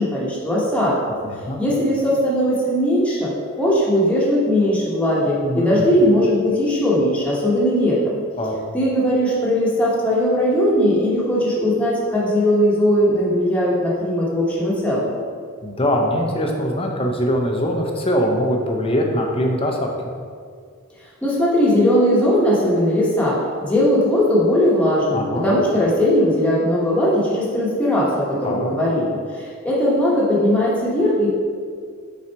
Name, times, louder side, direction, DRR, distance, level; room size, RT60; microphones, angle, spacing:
voice 1, 0.0-1.2 1.6-3.3 3.6-8.2 8.7-15.2 21.2-31.3, equal, 5° left, -7 dB, 1.1 m, -19 dB
voice 2, 1.1-1.6 5.4-5.8 8.4-8.5 15.6-20.1 25.1-25.5 28.4-28.7, equal, 25° left, 1 dB, 0.7 m, -22 dB
5.8 x 3.9 x 4.5 m, 2.1 s
head